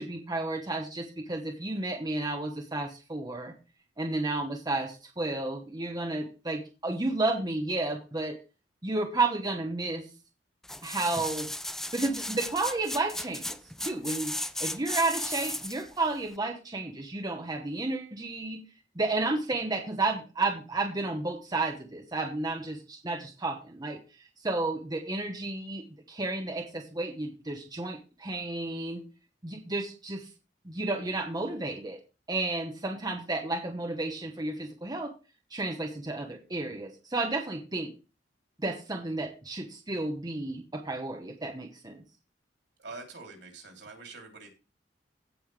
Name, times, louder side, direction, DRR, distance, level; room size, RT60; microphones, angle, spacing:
voice 1, 0.0-3.5 4.0-8.4 8.8-10.1 10.8-11.5 11.9-14.3 14.6-18.6 18.9-24.0 24.4-29.0 29.4-30.3 30.6-32.0 32.3-35.1 35.5-37.9 38.6-42.0, right 2 dB, 20° right, 3 dB, 1.0 m, -32 dB
sound 1, 10.6-15.9 16.4-16.5, left 1 dB, ahead, 0.4 m, -35 dB
voice 2, 42.8-44.5, right 3 dB, 70° right, 2 dB, 3.2 m, -45 dB
16.5 x 5.6 x 3.3 m, 0.31 s
head